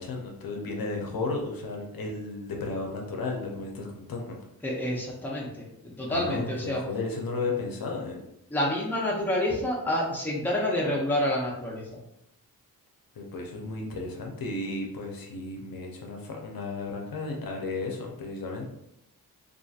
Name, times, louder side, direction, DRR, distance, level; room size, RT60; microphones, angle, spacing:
voice 1, 0.0-4.4 6.1-8.2 13.1-18.7, left 3 dB, 70° left, 1 dB, 0.6 m, -34 dB
voice 2, 4.6-6.8 8.5-11.8, left 1 dB, 5° left, -4 dB, 0.6 m, -28 dB
2.7 x 2.5 x 2.3 m, 0.81 s
wide cardioid pair, 115°, 37 cm